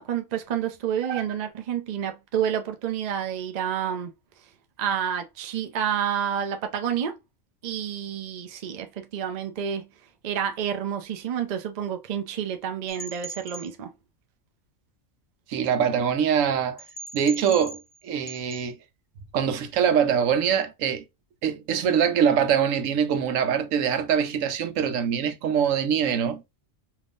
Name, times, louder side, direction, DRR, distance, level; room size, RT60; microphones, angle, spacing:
voice 1, 0.0-4.1 4.8-7.2 7.6-9.9 10.2-13.9, right 9 dB, 50° right, 0.5 m, -29 dB
sound 1, 12.9-13.7 16.8-18.0 18.3-18.6, right 2 dB, 40° left, 0.4 m, -40 dB
voice 2, 15.5-16.8 17.1-18.8 19.3-21.1 21.4-26.4, right 8 dB, 85° right, 1.0 m, -23 dB
3.5 x 2.8 x 2.4 m
omnidirectional pair, 1.3 m